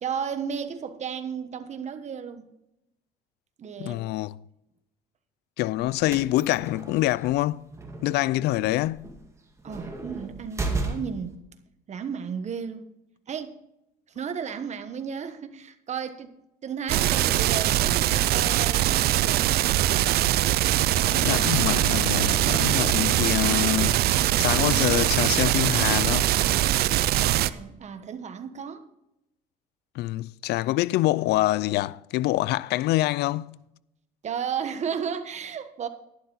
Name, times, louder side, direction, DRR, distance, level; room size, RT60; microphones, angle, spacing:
voice 1, 0.0-2.5 3.6-4.0 9.6-11.4 11.9-12.8 13.3-13.6 14.1-19.5 27.3-28.9 34.2-35.9, right 7 dB, 45° right, 1.3 m, -34 dB
voice 2, 3.8-4.3 5.6-7.6 8.0-9.1 21.2-24.0 24.4-26.3 30.0-33.6, left 16 dB, 80° left, 0.4 m, -25 dB
sound 1, 5.8-11.4, right 3 dB, 15° right, 2.2 m, -35 dB
sound 2, 16.9-27.5, right 14 dB, 70° right, 0.5 m, -22 dB
11.5 x 11.5 x 4.0 m
cardioid pair, 110°, 17 cm